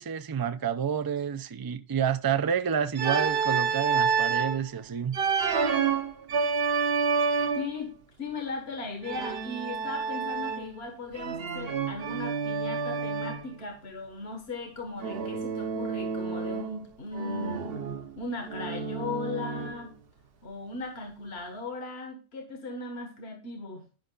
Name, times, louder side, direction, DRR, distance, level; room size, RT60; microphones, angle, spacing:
voice 1, 0.0-5.2, right 7 dB, 30° right, 0.4 m, -29 dB
Organ, 2.9-4.6 5.1-7.8 9.0-10.8 11.1-13.5 15.0-16.8 17.1-19.9, right 5 dB, 60° right, 1.1 m, -29 dB
voice 2, 7.5-17.7 18.2-19.9 20.4-23.8, left 3 dB, 65° left, 1.6 m, -37 dB
10.5 x 5.5 x 3.9 m
omnidirectional pair, 1.1 m